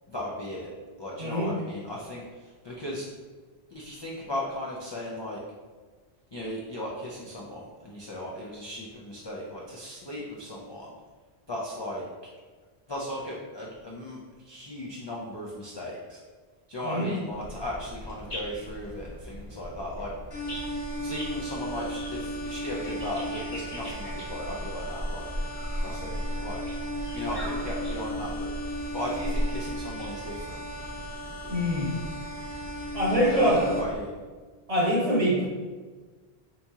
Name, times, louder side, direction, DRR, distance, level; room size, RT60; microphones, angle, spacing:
voice 1, 0.1-0.7 1.0-3.1 3.7-5.4 6.3-10.9 11.5-12.1 12.9-16.2 16.7-20.1 21.0-25.3 25.8-26.6 27.1-30.6 33.3-34.2, left 1 dB, 50° left, -4 dB, 0.3 m, -36 dB
voice 2, 1.2-1.5 16.8-17.1 31.4-31.9 32.9-33.6 34.7-35.5, equal, 35° right, -5 dB, 0.9 m, -24 dB
sound 1, 17.3-34.0, equal, 30° left, 1.1 m, -38 dB
sound 2, 20.3-33.8, equal, 80° left, 1.2 m, -36 dB
2.9 x 2.8 x 3.5 m, 1.4 s
omnidirectional pair, 1.1 m